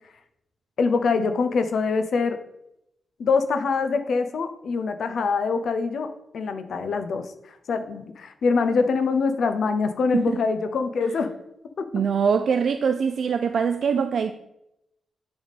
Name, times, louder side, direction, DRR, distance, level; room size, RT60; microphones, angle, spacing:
voice 1, 0.8-2.4 3.2-11.3 11.8-11.9, left 4 dB, 60° left, 0.7 m, -24 dB
voice 2, 11.9-14.3, right 6 dB, 55° right, 0.3 m, -23 dB
9.2 x 3.6 x 4.1 m
wide cardioid pair, 160°, 0 cm